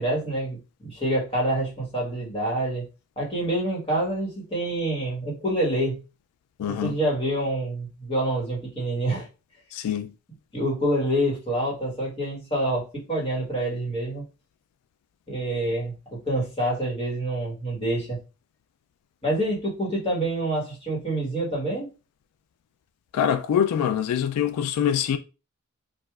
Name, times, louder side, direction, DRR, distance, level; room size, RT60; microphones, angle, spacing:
voice 1, 0.0-2.8 3.2-6.0 6.7-9.3 10.5-14.2 15.3-15.9 16.2-18.2 19.2-21.9, right 1 dB, 25° left, 1.3 m, -27 dB
voice 2, 6.6-6.9 9.7-10.1 23.1-25.2, left 9 dB, 85° left, 0.3 m, -24 dB
4.7 x 2.4 x 2.3 m
head